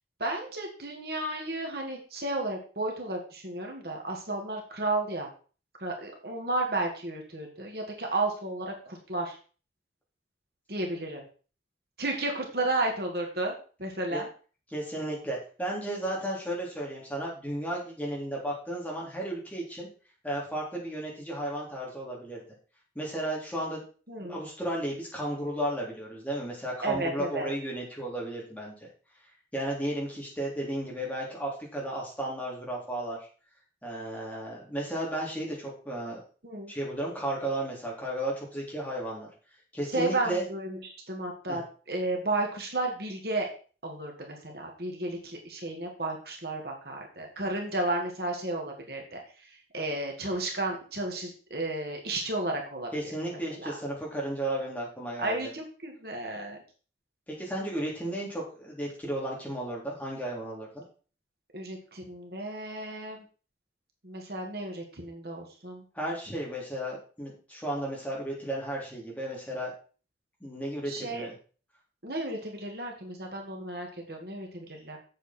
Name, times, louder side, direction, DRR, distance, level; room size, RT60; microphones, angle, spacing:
voice 1, 0.2-5.3 5.8-9.4 10.7-11.2 12.0-13.5 13.8-14.3 24.1-24.4 26.8-27.5 36.4-36.7 39.9-43.5 43.8-53.1 53.6-53.8 55.2-56.6 61.5-63.2 64.0-65.8 70.9-71.3 72.0-75.0, right 2 dB, 60° right, 1 dB, 2.0 m, -33 dB
voice 2, 14.7-19.9 20.2-22.4 22.9-23.8 24.2-28.7 29.5-33.2 33.8-36.2 36.7-39.3 39.7-40.4 41.5-41.6 52.9-55.3 57.3-60.8 65.9-69.7 70.4-71.3, right 1 dB, 10° left, -4 dB, 3.2 m, -34 dB
8.0 x 7.6 x 4.4 m, 0.38 s
head